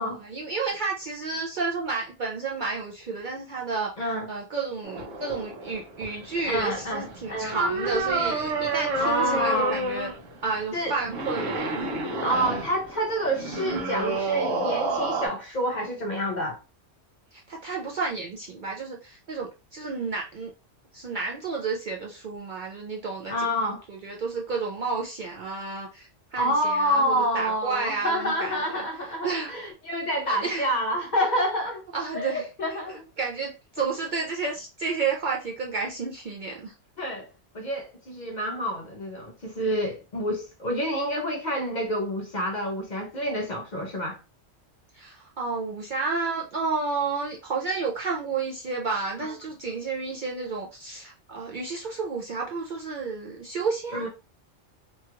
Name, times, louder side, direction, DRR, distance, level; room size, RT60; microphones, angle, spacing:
voice 1, 0.0-3.9 4.3-10.1 10.4-11.9 17.3-20.5 20.9-23.6 23.9-28.8 29.2-29.5 30.2-30.7 31.9-32.4 32.9-36.7 44.9-54.1, right 4 dB, 55° right, 0.5 m, -31 dB
voice 2, 4.0-4.3 6.4-7.6 9.0-9.8 10.7-11.0 12.2-16.6 23.3-23.8 26.4-31.8 32.1-33.1 37.0-37.3 37.5-44.2 49.2-49.3 53.9-54.1, equal, 50° left, 0.6 m, -28 dB
sound 1, 4.8-15.3, right 2 dB, 80° right, 1.2 m, -30 dB
3.0 x 2.3 x 2.9 m
omnidirectional pair, 1.2 m